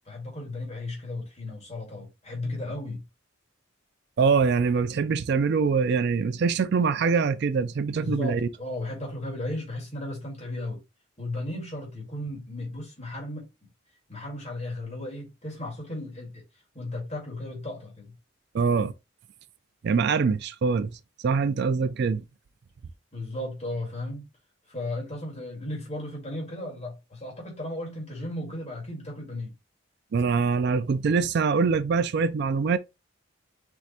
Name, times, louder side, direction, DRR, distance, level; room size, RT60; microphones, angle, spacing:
voice 1, 0.1-3.0 7.9-10.8 11.2-13.5 14.1-16.4 16.7-18.1 23.1-24.3 24.7-29.5, left 1 dB, 35° left, 1.9 m, -35 dB
voice 2, 4.2-8.5 18.5-18.9 19.8-22.2 30.1-32.8, right 5 dB, 55° right, 0.4 m, -24 dB
4.5 x 2.5 x 4.0 m
head